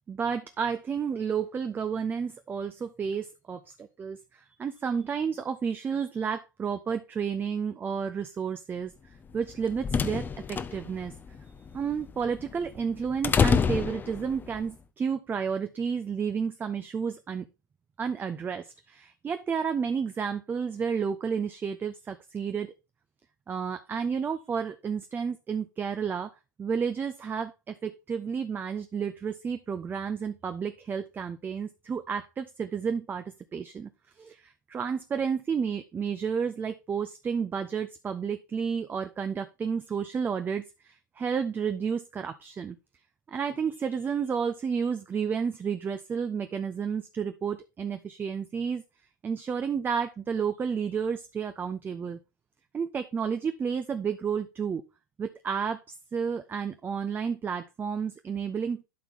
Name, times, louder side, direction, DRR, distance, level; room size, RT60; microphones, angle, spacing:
voice 1, 0.1-8.9 9.3-11.1 11.7-17.5 18.0-22.7 23.5-26.3 26.6-33.9 34.2-42.8 43.3-48.8 49.2-52.2 52.7-54.8 55.2-55.8 56.1-58.8, right 6 dB, 20° right, 9 dB, 0.6 m, -31 dB
sound 1, 9.3-14.6, left 6 dB, 20° left, 0.7 m, -29 dB
12.0 x 4.6 x 3.7 m, 0.26 s
hypercardioid pair, 95°, 10 cm